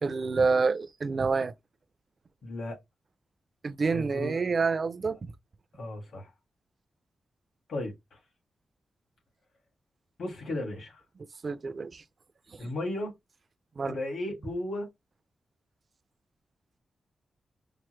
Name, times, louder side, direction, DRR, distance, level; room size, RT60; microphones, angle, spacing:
voice 1, 0.0-1.5 3.6-5.3 11.4-12.0 12.5-12.7 13.8-14.0, right 4 dB, 40° right, 0.4 m, -28 dB
voice 2, 2.4-2.8 3.9-4.3 5.7-6.3 7.7-8.2 10.2-11.0 12.6-13.1 13.8-14.9, left 1 dB, 75° left, 2.2 m, -35 dB
5.6 x 2.1 x 3.1 m
wide cardioid pair, 160°, 0 cm